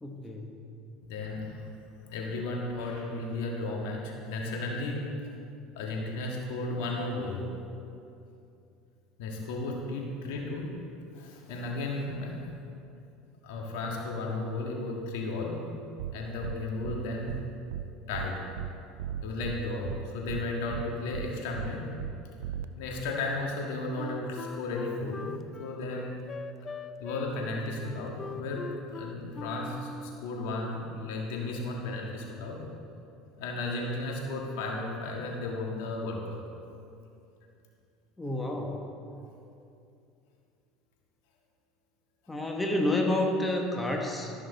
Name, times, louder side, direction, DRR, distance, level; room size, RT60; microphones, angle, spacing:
voice 1, 0.0-0.7 38.2-38.8 42.3-44.3, left 1 dB, 10° left, 1 dB, 1.2 m, -29 dB
voice 2, 1.0-1.7 2.1-5.1 5.7-7.5 9.2-10.7 11.1-12.5 13.4-15.6 16.1-17.3 18.1-18.5 19.2-21.9 22.8-25.3 25.6-26.2 27.0-32.6 33.4-36.4, left 2 dB, 75° left, -1 dB, 1.7 m, -34 dB
sound 1, 16.0-16.1 16.4-16.6 16.8-17.0 17.3-17.4 17.7-17.8 18.1-18.3 18.6-18.7 19.0-19.6 19.8-20.0 20.3-20.4 20.7-20.8 21.1-21.3 21.6-21.7 22.0-22.1 22.4-22.6, right 11 dB, 85° right, 0.3 m, -35 dB
Wind instrument woodwind instrument, 24.0-30.3, left 4 dB, 30° left, 0.4 m, -41 dB
13.0 x 6.1 x 4.1 m, 2.6 s
supercardioid pair, 90°, 0 cm